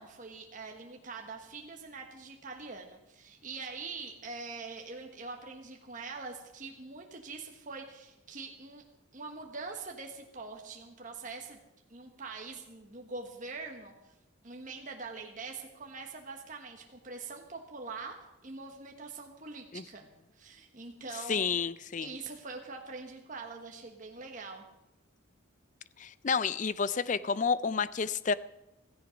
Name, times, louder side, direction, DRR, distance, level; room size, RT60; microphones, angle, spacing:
voice 1, 0.0-8.8 9.1-11.6 11.9-14.1 14.4-20.0 20.3-21.6 22.0-24.7, right 4 dB, 40° right, 2 dB, 1.3 m, -44 dB
voice 2, 21.3-22.1 26.0-28.3, left 5 dB, 35° left, 17 dB, 0.4 m, -30 dB
16.0 x 14.5 x 5.1 m, 0.97 s
head